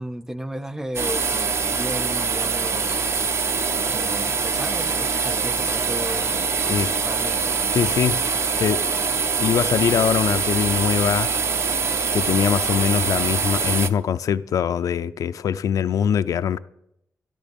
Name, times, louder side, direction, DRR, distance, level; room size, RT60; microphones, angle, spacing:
voice 1, 0.0-3.1 3.9-6.8 7.1-7.6, right 1 dB, 10° right, 0.5 m, -34 dB
sound 1, 0.9-13.9, right 5 dB, 45° right, 0.7 m, -24 dB
voice 2, 7.7-8.2 8.6-8.8 9.4-11.3 12.1-16.6, left 8 dB, 85° left, 0.5 m, -22 dB
12.5 x 12.0 x 5.3 m
wide cardioid pair, 125°, 6 cm